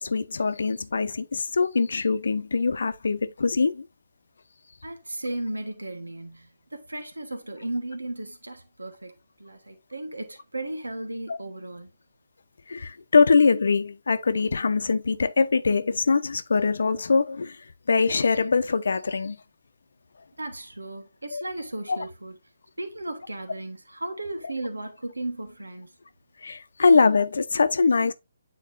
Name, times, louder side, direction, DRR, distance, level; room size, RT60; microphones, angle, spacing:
voice 1, 0.0-3.9 11.3-11.4 12.7-17.6 17.9-19.4 21.3-21.4 21.9-22.0 26.4-28.1, left 4 dB, 65° left, 0.7 m, -23 dB
voice 2, 4.8-9.1 9.4-11.9 20.4-22.3 22.8-25.9, right 1 dB, 85° right, 1.3 m, -35 dB
9.2 x 4.1 x 2.6 m
figure-of-eight pair, 145°, 0 cm